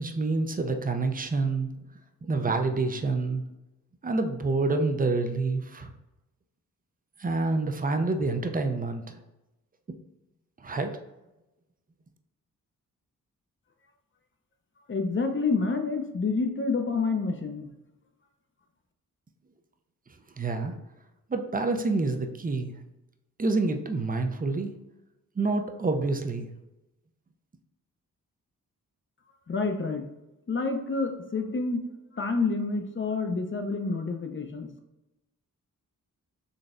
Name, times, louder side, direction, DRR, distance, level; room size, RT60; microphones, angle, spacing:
voice 1, 0.0-1.7 2.2-3.4 4.0-5.9 7.2-9.2 10.6-10.9 20.4-20.7 21.3-22.7 23.4-24.7 25.4-26.5, right 3 dB, 25° right, 6 dB, 0.5 m, -27 dB
voice 2, 14.9-17.7 29.5-30.0 30.5-31.8 32.1-34.7, left 4 dB, 35° left, 5 dB, 0.6 m, -28 dB
4.0 x 3.2 x 2.5 m, 0.97 s
cardioid pair, 50°, 35 cm